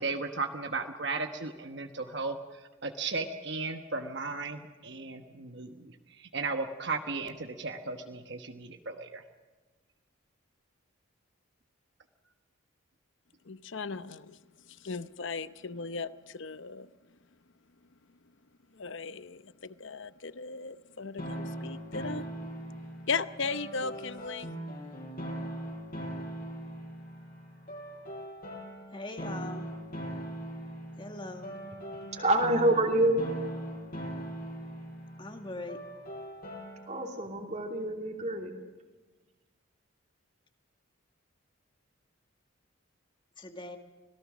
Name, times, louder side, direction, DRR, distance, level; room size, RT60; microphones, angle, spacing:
voice 1, 0.0-2.4 2.8-9.2, right 3 dB, 55° right, 6 dB, 1.2 m, -35 dB
voice 2, 13.5-14.4 14.8-16.9 18.8-22.2 23.1-24.5, left 4 dB, 65° left, 14 dB, 0.8 m, -37 dB
sound 1, 21.2-37.1, right 1 dB, 45° left, 5.2 m, -40 dB
voice 3, 28.9-29.7 31.0-31.5 35.2-35.8 43.4-43.8, left 2 dB, 25° left, 6 dB, 1.8 m, -41 dB
voice 4, 32.1-33.3 36.9-38.5, right 1 dB, 35° right, 3 dB, 2.8 m, -27 dB
25.5 x 18.0 x 6.2 m, 1.3 s
head